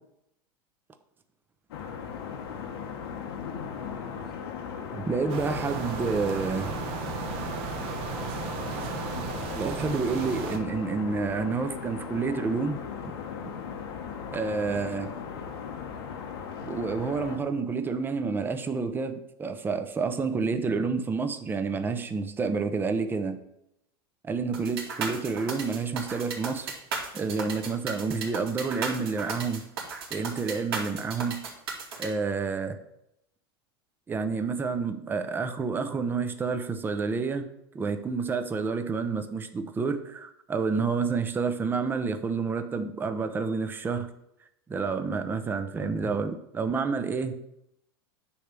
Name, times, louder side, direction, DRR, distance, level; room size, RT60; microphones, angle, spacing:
sound 1, 1.7-17.4, left 7 dB, 85° left, 1.3 m, -38 dB
voice 1, 4.9-6.8 9.5-12.8 13.4-13.5 14.3-15.1 16.6-23.4 24.2-26.7 27.1-29.7 30.1-31.4 32.0-32.8 34.1-37.5 37.7-44.1 44.7-47.4, right 4 dB, 15° right, 8 dB, 0.7 m, -29 dB
sound 2, 5.3-10.6, right 5 dB, 50° right, 1.2 m, -35 dB
sound 3, 24.5-32.1, right 5 dB, 75° right, 2.7 m, -35 dB
9.9 x 3.4 x 6.7 m, 0.81 s
supercardioid pair, 130°, 13 cm